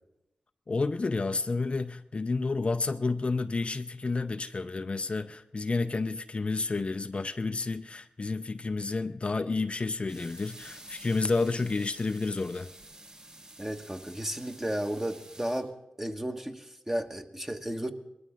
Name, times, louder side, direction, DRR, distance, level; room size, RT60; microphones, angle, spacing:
voice 1, 0.7-12.7, left 3 dB, 45° left, 9 dB, 0.6 m, -30 dB
sound 1, 10.1-15.6, right 1 dB, 35° right, 5.0 m, -50 dB
voice 2, 13.6-15.7 16.0-17.9, right 1 dB, 15° right, 5 dB, 1.3 m, -33 dB
19.5 x 13.0 x 3.8 m, 0.90 s
cardioid pair, 45°, 3 cm